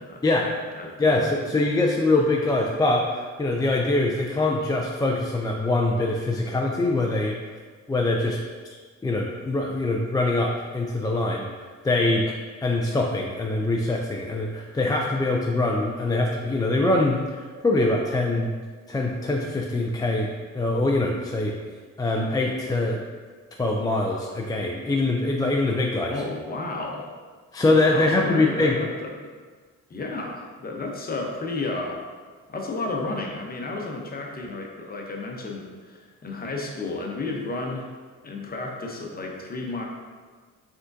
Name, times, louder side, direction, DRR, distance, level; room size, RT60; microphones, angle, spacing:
voice 1, 0.0-1.1 26.1-27.1 27.8-29.1 29.9-32.0 32.5-37.9 38.2-39.8, left 2 dB, 30° left, 0 dB, 0.8 m, -32 dB
voice 2, 1.0-7.4 7.9-8.4 9.0-11.5 11.8-12.2 12.6-18.5 18.9-20.3 20.5-21.6 22.0-23.0 23.6-26.1 27.5-28.8, left 2 dB, 15° left, -1 dB, 0.3 m, -23 dB
4.9 x 3.7 x 2.6 m, 1.5 s
cardioid pair, 90°, 30 cm